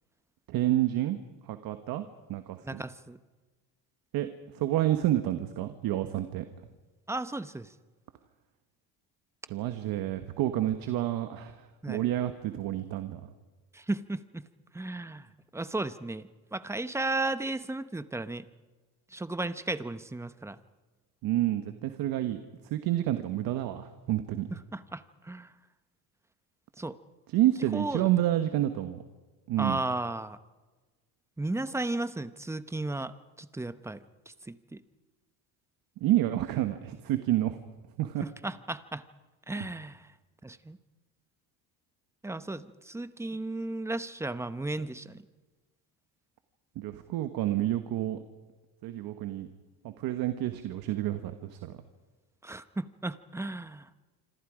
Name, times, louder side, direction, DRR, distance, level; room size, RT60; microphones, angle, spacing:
voice 1, 0.5-1.2 1.5-2.8 4.1-4.3 4.5-6.5 9.5-13.2 21.2-22.4 22.6-24.5 27.3-29.0 29.5-29.8 36.0-37.6 38.0-38.2 46.7-48.2 48.8-49.5 49.8-51.7, right 13 dB, 65° right, 9 dB, 1.4 m, -29 dB
voice 2, 2.6-3.2 7.1-7.7 11.8-12.0 13.7-14.4 14.7-15.3 15.5-16.2 16.5-18.5 19.1-20.6 24.5-25.5 26.8-27.0 27.7-28.1 29.6-30.4 31.4-34.0 34.3-34.8 38.2-39.0 39.5-40.0 40.4-40.8 42.2-45.2 52.4-53.9, right 2 dB, 5° right, 12 dB, 0.9 m, -34 dB
26.5 x 26.5 x 5.0 m, 1.3 s
cardioid pair, 120°, 38 cm